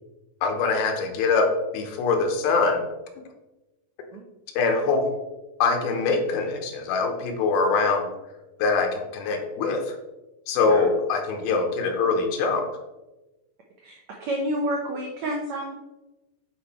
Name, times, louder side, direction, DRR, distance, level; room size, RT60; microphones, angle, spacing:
voice 1, 0.4-2.8 4.6-5.1 5.6-8.1 8.6-10.0 10.5-12.6, left 4 dB, 80° left, 4 dB, 2.8 m, -23 dB
voice 2, 13.8-15.7, right 1 dB, 80° right, 0 dB, 1.6 m, -30 dB
9.5 x 4.4 x 4.3 m, 1.0 s
omnidirectional pair, 4.4 m